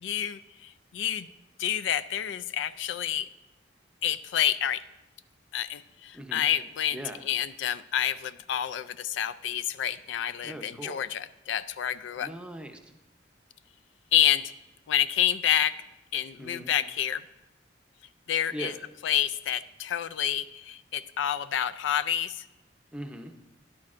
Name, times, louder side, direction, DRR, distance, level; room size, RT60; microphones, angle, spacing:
voice 1, 0.0-1.3 1.6-3.3 4.0-4.8 5.5-7.0 7.2-12.3 14.1-14.5 14.9-15.8 16.1-17.2 18.3-18.7 19.0-22.4, left 10 dB, 75° left, 15 dB, 0.3 m, -28 dB
voice 2, 6.1-6.4 6.9-7.3 10.4-11.0 12.2-12.9 16.4-16.7 18.5-18.8 22.9-23.3, right 1 dB, 5° right, 5 dB, 0.6 m, -40 dB
13.0 x 10.5 x 2.5 m, 0.96 s
head